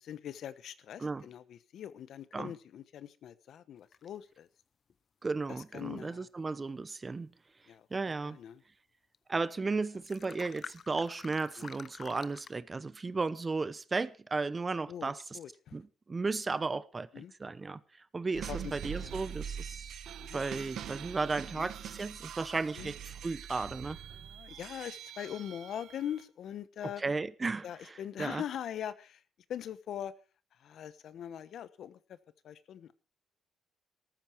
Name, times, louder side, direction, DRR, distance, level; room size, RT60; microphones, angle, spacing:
voice 1, 0.0-4.5 5.7-6.3 7.7-7.9 8.2-8.6 11.6-11.7 14.9-15.8 17.1-17.3 18.5-18.7 19.0-19.2 20.2-20.4 21.5-21.7 22.8-22.9 24.1-27.0 27.6-29.2 29.5-30.1 30.6-32.2 32.4-32.9, left 10 dB, 70° left, 1.0 m, -42 dB
sound 1, 3.9-4.1 4.9-5.0 9.1-9.2 9.5-9.6 9.8-12.6, left 6 dB, 50° left, 0.7 m, -48 dB
voice 2, 5.2-7.3 7.9-8.4 9.3-15.4 15.7-15.8 16.1-17.8 18.1-20.0 20.3-24.0 27.0-28.4, right 3 dB, 25° right, 0.8 m, -35 dB
sound 2, 18.3-26.2, right 9 dB, 75° right, 1.4 m, -43 dB
13.5 x 13.5 x 4.6 m
cardioid pair, 90°, 0 cm